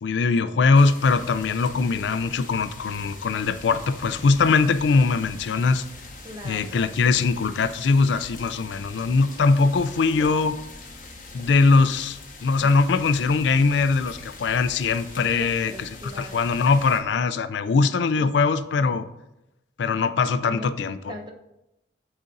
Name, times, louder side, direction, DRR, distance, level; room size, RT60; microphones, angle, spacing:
voice 1, 0.0-5.8 6.4-10.6 11.3-19.1 19.8-21.1, left 4 dB, 80° left, 12 dB, 0.4 m, -21 dB
sound 1, 0.7-17.0, left 2 dB, 45° left, 1.2 m, -42 dB
voice 2, 6.2-6.8 15.3-16.4 18.2-18.4 20.5-20.7 21.1-21.3, left 1 dB, 25° right, 3 dB, 0.7 m, -40 dB
12.0 x 4.0 x 2.6 m, 0.92 s
head